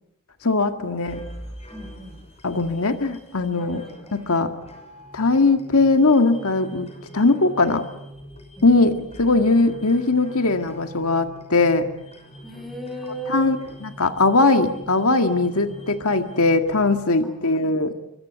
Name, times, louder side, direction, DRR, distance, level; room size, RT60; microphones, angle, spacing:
voice 1, 0.4-1.2 2.4-3.8 4.1-4.5 5.1-6.9 7.1-7.8 8.6-11.9 13.3-13.6 13.8-17.9, left 3 dB, 80° left, 7 dB, 1.9 m, -20 dB
sound 1, 1.1-17.1, equal, 30° left, 6.3 m, -43 dB
voice 2, 1.7-2.2 3.6-4.6 8.6-9.0 12.4-13.5 17.2-17.9, right 1 dB, ahead, 5 dB, 6.2 m, -38 dB
29.5 x 24.0 x 8.1 m, 0.81 s
head